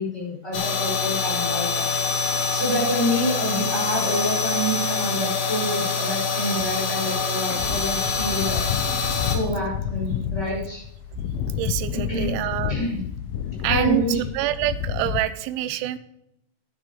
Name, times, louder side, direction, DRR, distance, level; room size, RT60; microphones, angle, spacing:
voice 1, 0.0-1.9 2.5-8.6 9.3-10.8 12.1-12.3 12.7-13.0 13.7-14.2, equal, 15° left, -3 dB, 5.5 m, -27 dB
sound 1, 0.5-9.4, left 4 dB, 55° left, 3.5 m, -25 dB
sound 2, 7.6-15.2, left 8 dB, 80° left, 3.2 m, -29 dB
voice 2, 9.1-9.4 11.6-12.7 13.6-16.0, right 14 dB, 80° right, 12 dB, 2.9 m, -26 dB
12.5 x 11.0 x 3.7 m, 0.78 s
omnidirectional pair, 6.0 m